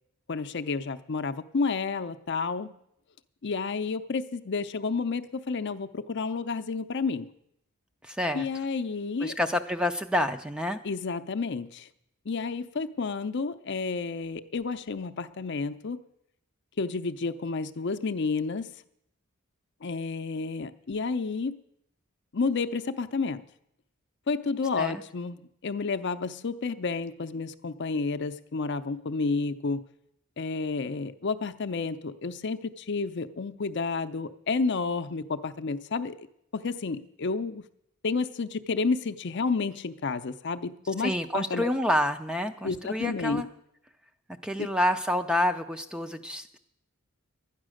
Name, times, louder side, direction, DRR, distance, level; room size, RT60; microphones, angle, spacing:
voice 1, 0.3-2.7 3.4-7.3 8.3-9.3 10.8-11.9 12.3-16.0 16.8-18.7 19.8-21.6 22.3-23.4 24.3-29.8 30.4-36.2 36.5-37.6 38.0-41.7 42.6-43.4, left 4 dB, 50° left, 11 dB, 0.5 m, -30 dB
voice 2, 8.0-8.5 9.2-10.8 24.8-25.0 41.0-43.5 44.4-46.6, left 1 dB, 5° right, 7 dB, 0.4 m, -28 dB
12.0 x 9.8 x 6.4 m, 0.75 s
head